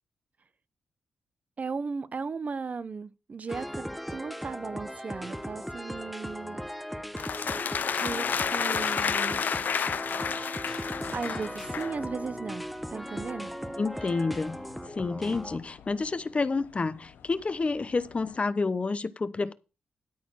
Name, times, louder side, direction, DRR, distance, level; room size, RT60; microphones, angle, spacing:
voice 1, 1.6-7.0 8.0-9.4 11.1-13.5, right 4 dB, 45° right, 0.8 m, -36 dB
sound 1, 3.5-15.6, equal, ahead, 0.9 m, -38 dB
sound 2, 7.2-12.0, left 7 dB, 60° left, 0.5 m, -30 dB
sound 3, 10.9-18.4, left 8 dB, 85° left, 1.2 m, -53 dB
voice 2, 13.8-14.6 14.9-19.5, left 3 dB, 35° left, 0.9 m, -29 dB
13.0 x 4.3 x 7.7 m
cardioid pair, 60°, 3 cm